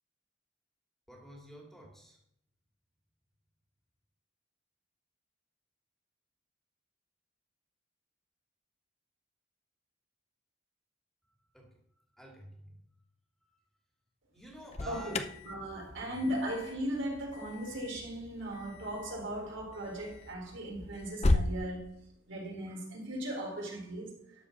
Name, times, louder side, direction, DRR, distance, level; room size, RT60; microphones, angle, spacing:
voice 1, 1.1-2.2 11.5-11.7 12.2-12.8 13.4-13.5 14.3-15.3 16.0-16.2, equal, ahead, -1 dB, 2.4 m, -50 dB
Alarm, 14.4-21.5, left 2 dB, 35° left, 0.6 m, -36 dB
voice 2, 14.8-15.2 15.4-21.9 22.3-24.1, equal, 90° right, -2 dB, 4.1 m, -37 dB
12.0 x 5.1 x 6.6 m, 0.74 s
head